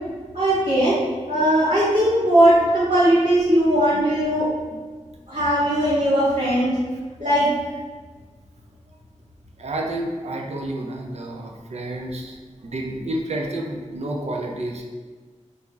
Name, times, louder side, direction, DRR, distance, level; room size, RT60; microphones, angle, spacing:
voice 1, 0.3-1.0 1.3-4.5 5.3-6.7 7.2-7.5, right 1 dB, 75° right, -11 dB, 1.0 m, -19 dB
voice 2, 9.6-12.4 12.6-14.8, right 1 dB, 60° right, 1 dB, 0.4 m, -30 dB
2.4 x 2.0 x 3.2 m, 1.4 s
cardioid pair, 40°, 13 cm